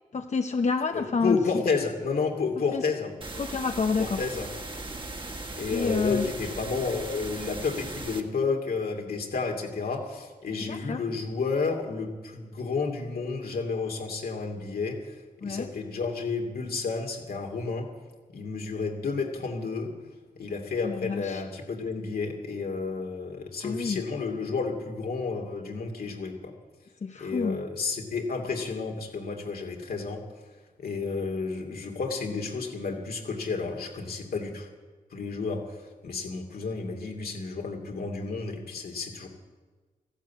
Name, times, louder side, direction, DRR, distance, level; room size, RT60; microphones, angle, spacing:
voice 1, 0.1-1.4 2.7-2.8 3.4-4.2 5.7-6.3 10.7-11.0 15.4-15.7 20.8-21.4 23.6-24.0 27.0-27.6, left 4 dB, 50° left, 6 dB, 0.8 m, -28 dB
voice 2, 0.9-3.1 4.0-4.5 5.6-15.1 15.4-17.9 18.3-19.9 20.4-26.5 27.2-30.2 30.8-34.7 35.1-35.6 36.0-39.3, left 4 dB, 80° left, 1 dB, 2.6 m, -31 dB
sound 1, 3.2-8.2, right 2 dB, 30° right, 1.9 m, -38 dB
14.5 x 12.0 x 8.4 m, 1.4 s
cardioid pair, 60°, 15 cm